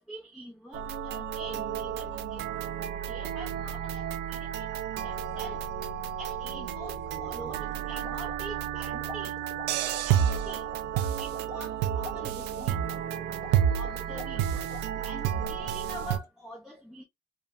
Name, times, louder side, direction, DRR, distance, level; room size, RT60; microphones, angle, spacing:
voice 1, 0.0-2.4 3.1-4.7 5.0-5.6 6.2-9.3 10.0-10.6 11.2-12.8 13.7-14.4 15.0-17.0, right 1 dB, 5° right, 0.6 m, -45 dB
sound 1, 0.7-16.2, right 9 dB, 90° right, 0.4 m, -31 dB
sound 2, 6.8-16.2, right 1 dB, 25° right, 1.3 m, -47 dB
3.0 x 2.1 x 2.4 m
cardioid pair, 110°, 17 cm